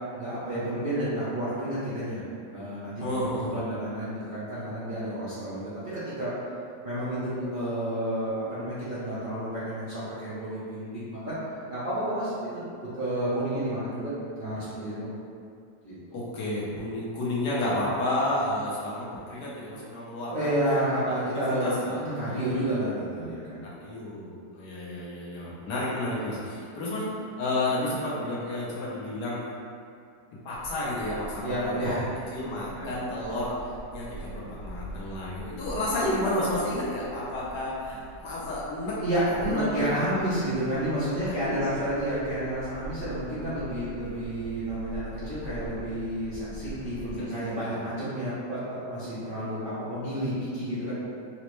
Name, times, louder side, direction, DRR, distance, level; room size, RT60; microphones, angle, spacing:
voice 1, 0.1-2.2 2.5-3.1 3.5-6.3 6.8-12.5 12.8-15.1 15.8-15.9 20.3-23.7 31.4-32.1 32.8-32.9 35.6-35.7 39.0-50.9, right 1 dB, 55° right, -13 dB, 0.6 m, -30 dB
voice 2, 3.0-3.6 16.1-20.5 21.0-22.5 23.6-29.4 30.4-31.9 32.3-33.5 33.9-38.9 39.5-40.0 41.3-41.9 47.2-47.8, left 1 dB, 70° left, -7 dB, 1.3 m, -31 dB
sound 1, 30.5-47.2, right 1 dB, 80° right, 1.4 m, -44 dB
4.2 x 2.0 x 3.0 m, 2.4 s
omnidirectional pair, 1.8 m